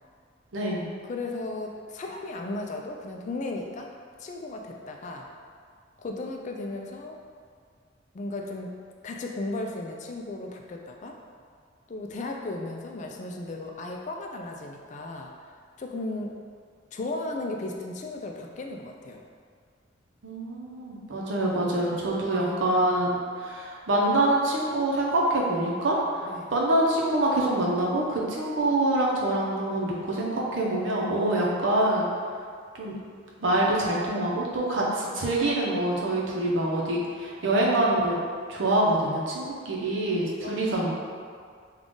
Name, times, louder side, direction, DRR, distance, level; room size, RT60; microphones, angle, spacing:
voice 1, 0.5-0.9 20.2-32.1 32.7-32.9 33.4-38.2 38.5-40.9, right 1 dB, 70° right, -4 dB, 0.7 m, -25 dB
voice 2, 1.0-3.9 4.2-5.3 6.0-7.2 8.1-8.7 9.0-11.2 11.9-16.3 16.9-19.2 22.3-22.6 26.2-26.5 31.3-31.6 37.4-37.8 40.4-40.9, left 2 dB, 40° left, 1 dB, 0.3 m, -35 dB
3.7 x 2.4 x 3.7 m, 2.1 s
head